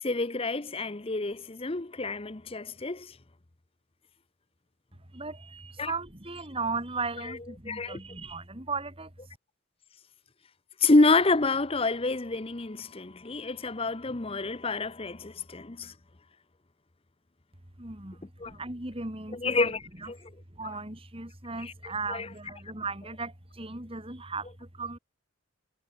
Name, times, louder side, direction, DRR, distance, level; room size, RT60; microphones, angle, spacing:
voice 1, 0.0-3.1 5.8-5.9 7.7-8.0 10.8-15.9 18.4-18.5 19.3-19.8 20.1-20.2 22.1-22.3, left 3 dB, 25° left, 0.8 m, -27 dB
voice 2, 5.1-9.1 17.8-20.1 20.5-25.0, right 4 dB, 25° right, 3.3 m, -37 dB
head